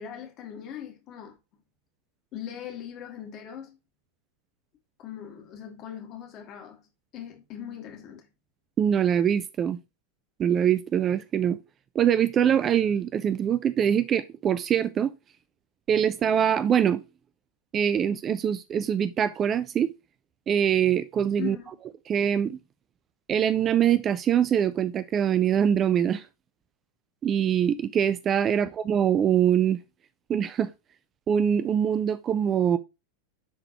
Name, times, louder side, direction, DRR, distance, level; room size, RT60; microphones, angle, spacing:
voice 1, 0.0-1.4 2.3-3.8 5.0-6.9 7.1-8.3 21.4-21.7 28.5-28.7, left 9 dB, 35° left, 2.0 m, -40 dB
voice 2, 8.8-9.8 10.4-11.6 12.0-15.1 15.9-17.0 17.7-19.9 20.5-21.6 22.1-22.6 23.3-26.2 27.2-29.8 30.3-30.7 31.3-32.8, right 9 dB, 25° right, 0.4 m, -23 dB
10.5 x 3.9 x 2.9 m
figure-of-eight pair, 90°, 0 cm